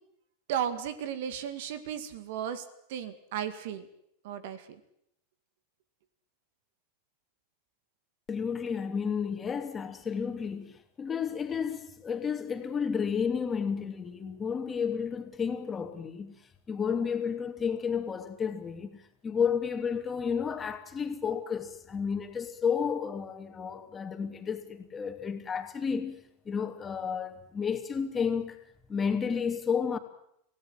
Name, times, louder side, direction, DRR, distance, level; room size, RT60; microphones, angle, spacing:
voice 1, 0.5-2.6 2.9-3.9 4.2-4.8, right 9 dB, 60° right, 2.2 m, -34 dB
voice 2, 8.3-16.3 16.7-19.0 19.2-26.2 26.4-28.6 28.9-30.0, left 6 dB, 25° left, 2.8 m, -31 dB
26.5 x 17.0 x 7.9 m
hypercardioid pair, 90°, 0 cm